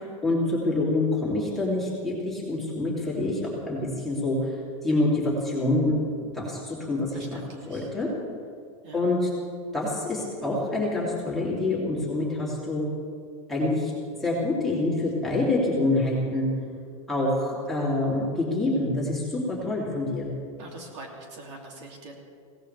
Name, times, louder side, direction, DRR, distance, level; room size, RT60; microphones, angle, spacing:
voice 1, 0.0-4.5 4.8-6.0 6.3-7.4 7.7-8.1 8.9-9.3 9.7-12.9 13.5-13.9 14.2-16.5 17.1-20.3, left 2 dB, ahead, -7 dB, 3.0 m, -26 dB
voice 2, 7.1-7.9 8.8-9.0 15.0-15.1 20.6-22.1, right 2 dB, 55° right, 0 dB, 2.8 m, -43 dB
21.5 x 17.5 x 3.4 m, 2.2 s
supercardioid pair, 170°, 18 cm